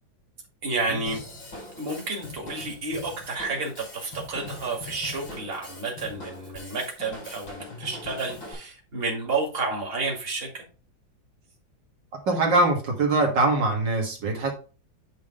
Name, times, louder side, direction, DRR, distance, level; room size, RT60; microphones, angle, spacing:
voice 1, 0.6-1.2 1.8-10.6, right 3 dB, 30° right, 0 dB, 2.3 m, -30 dB
Drum kit / Drum, 1.0-8.5, left 2 dB, 90° left, 6.1 m, -42 dB
voice 2, 12.3-14.5, right 2 dB, 70° right, 0 dB, 2.5 m, -22 dB
9.5 x 3.7 x 4.9 m, 0.35 s
omnidirectional pair, 2.0 m